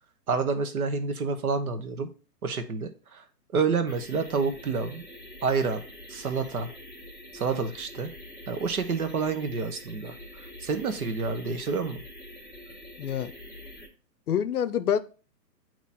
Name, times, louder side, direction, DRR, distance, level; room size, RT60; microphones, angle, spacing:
voice 1, 0.3-2.1 2.4-3.2 3.5-5.1 5.4-5.8 6.1-6.7 7.3-8.1 8.5-12.0, right 4 dB, 60° right, 1.0 m, -28 dB
sound 1, 3.9-13.9, left 1 dB, 10° right, 1.1 m, -46 dB
voice 2, 13.0-13.3 14.3-15.0, left 9 dB, 65° left, 0.6 m, -26 dB
8.4 x 3.0 x 4.2 m
hypercardioid pair, 175°, 49 cm